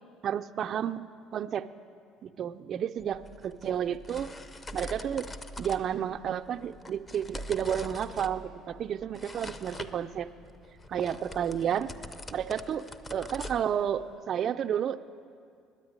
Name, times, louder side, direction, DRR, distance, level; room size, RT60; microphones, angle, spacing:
voice 1, 0.2-1.0 1.3-1.7 2.2-4.3 4.7-5.3 5.6-10.3 10.9-11.9 12.3-15.1, right 9 dB, 55° right, 10 dB, 0.4 m, -31 dB
sound 1, 3.0-14.2, left 1 dB, 30° left, 0.7 m, -44 dB
9.5 x 9.4 x 9.6 m, 2.3 s
supercardioid pair, 80°, 0 cm